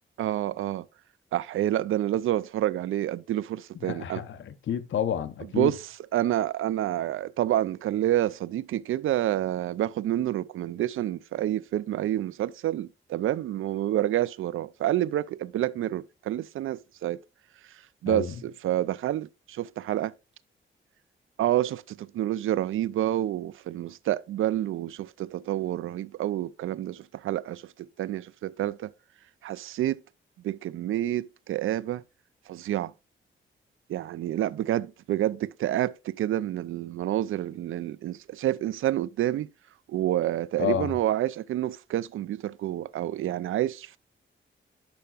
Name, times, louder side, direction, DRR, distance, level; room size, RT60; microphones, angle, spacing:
voice 1, 0.2-0.9 1.3-4.2 5.5-17.2 18.0-20.1 21.4-28.9 29.4-30.0 30.4-32.0 32.5-32.9 33.9-39.5 39.9-44.0, right 13 dB, 80° right, 0.4 m, -28 dB
voice 2, 3.8-5.7 18.1-18.3 40.6-40.9, left 9 dB, 70° left, 0.8 m, -30 dB
10.5 x 5.6 x 2.4 m
cardioid pair, 115°, 21 cm